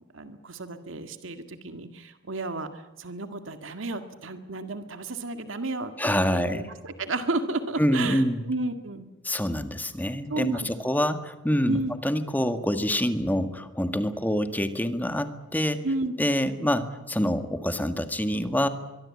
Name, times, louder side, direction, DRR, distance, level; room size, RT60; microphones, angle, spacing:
voice 1, 0.1-9.1 10.3-10.8 11.7-11.9 15.8-16.1, right 2 dB, 90° right, 8 dB, 1.9 m, -32 dB
voice 2, 6.0-6.6 7.8-8.4 9.2-15.9 16.2-18.7, equal, 10° left, 8 dB, 1.8 m, -26 dB
23.5 x 23.5 x 8.6 m, 1.0 s
head